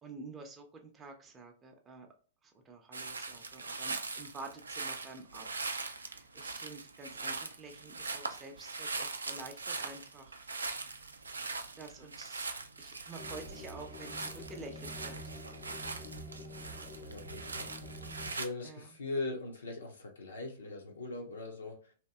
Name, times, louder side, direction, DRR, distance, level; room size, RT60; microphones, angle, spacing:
voice 1, 0.0-2.1 2.7-5.7 6.0-10.4 11.8-12.5 12.8-15.2 18.6-18.8, right 3 dB, 20° right, 0.5 m, -49 dB
sound 1, 2.9-18.5, right 3 dB, 80° right, 0.3 m, -41 dB
sound 2, 13.2-18.3, equal, 30° left, 0.4 m, -47 dB
voice 2, 17.1-17.7 18.2-21.9, left 2 dB, 75° left, 0.6 m, -40 dB
2.8 x 2.6 x 2.2 m
figure-of-eight pair, 105°, 0 cm